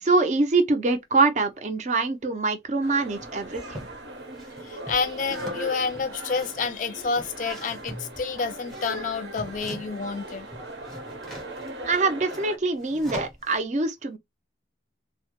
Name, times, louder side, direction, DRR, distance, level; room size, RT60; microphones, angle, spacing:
voice 1, 0.0-3.9 11.8-14.2, right 3 dB, 40° right, 0.4 m, -24 dB
sound 1, 2.8-12.6, right 1 dB, 85° right, 0.8 m, -39 dB
sound 2, 3.2-3.9 4.3-10.1 10.4-13.6, equal, ahead, 0.7 m, -42 dB
voice 2, 4.6-10.5, left 5 dB, 45° left, 0.3 m, -29 dB
2.1 x 2.0 x 2.9 m
head